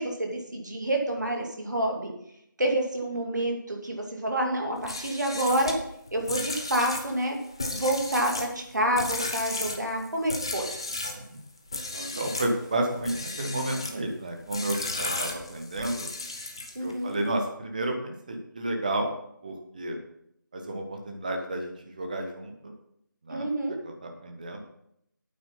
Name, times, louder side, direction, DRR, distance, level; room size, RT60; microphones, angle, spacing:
voice 1, 0.0-2.1 2.6-5.7 6.1-7.4 7.7-10.7 16.7-17.1 23.3-23.7, right 1 dB, 60° right, 1 dB, 2.5 m, -28 dB
sound 1, 4.8-11.2 11.7-12.5 13.0-14.0 14.5-16.9, left 2 dB, 15° left, 0.5 m, -34 dB
voice 2, 11.9-16.1 16.8-19.1 19.4-20.0 20.5-22.7 23.2-23.4 23.8-24.6, right 1 dB, 25° right, 3 dB, 1.1 m, -31 dB
8.8 x 7.6 x 5.6 m, 0.76 s
figure-of-eight pair, 165°, 11 cm